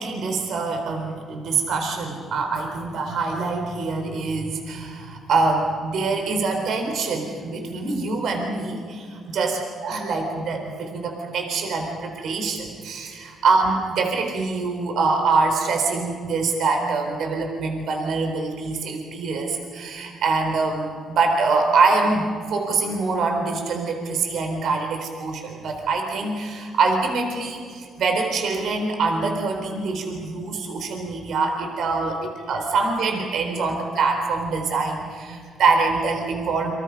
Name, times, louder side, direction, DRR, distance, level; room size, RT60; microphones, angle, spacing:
voice 1, 0.0-36.7, right 4 dB, 70° right, 4 dB, 4.0 m, -24 dB
30.0 x 25.5 x 5.4 m, 2.2 s
cardioid pair, 90°, 0 cm